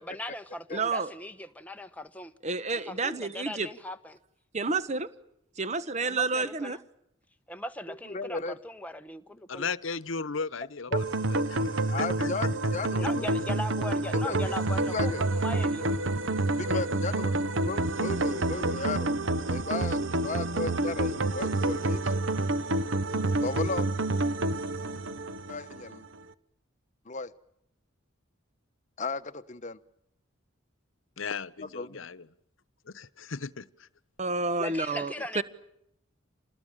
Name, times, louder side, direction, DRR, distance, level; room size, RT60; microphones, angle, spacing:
voice 1, 0.1-2.3 2.7-4.2 6.0-6.8 7.5-9.7 13.0-15.1 15.4-16.0 34.6-35.4, left 1 dB, 5° left, 1.1 m, -39 dB
voice 2, 0.7-1.1 2.4-3.7 4.5-5.1 5.6-6.8 34.2-35.4, right 3 dB, 35° right, 1.2 m, -30 dB
voice 3, 7.9-8.6 10.9-11.0 11.9-13.3 14.2-14.5 14.9-15.2 16.5-19.2 19.5-22.1 23.4-23.9 25.5-26.0 27.0-27.3 29.0-29.8 31.6-32.1, left 3 dB, 40° left, 1.1 m, -35 dB
voice 4, 9.5-12.3 31.2-32.3 32.9-33.9, left 5 dB, 80° left, 1.0 m, -36 dB
sound 1, 10.9-26.0, right 2 dB, 70° right, 1.1 m, -28 dB
28.0 x 19.5 x 9.0 m
head